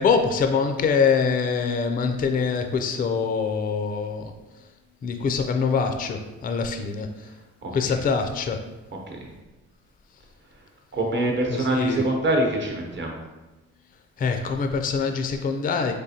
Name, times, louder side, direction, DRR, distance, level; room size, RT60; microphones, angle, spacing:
voice 1, 0.0-4.2 5.0-7.1 7.7-8.6 11.5-12.0 14.2-15.9, left 5 dB, 30° left, 6 dB, 0.4 m, -24 dB
voice 2, 10.9-13.2, right 1 dB, 40° right, 0 dB, 0.9 m, -25 dB
3.7 x 3.2 x 2.8 m, 1.1 s
cardioid pair, 90°, 30 cm